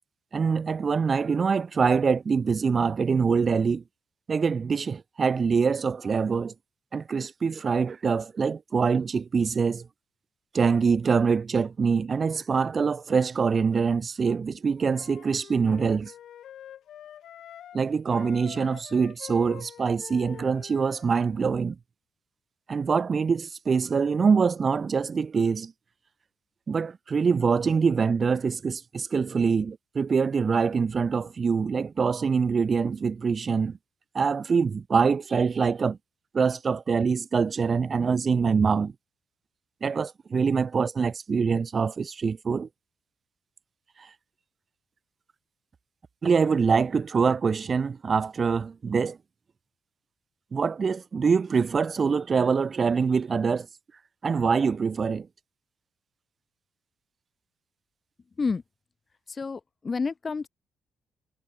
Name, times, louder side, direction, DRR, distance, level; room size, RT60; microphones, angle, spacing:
voice 1, 0.3-3.8 4.3-6.5 6.9-9.9 10.5-16.1 17.7-21.8 22.7-25.7 26.7-33.8 34.1-36.0 36.3-38.9 39.8-42.7 46.2-49.2 50.5-53.7 54.2-55.3, right 5 dB, 40° right, 0.6 m, -24 dB
Wind instrument woodwind instrument, 14.8-17.8 18.1-21.2, left 10 dB, 70° left, 0.9 m, -46 dB
voice 2, 59.3-60.5, left 4 dB, 35° left, 0.7 m, -29 dB
cardioid pair, 90°, 0 cm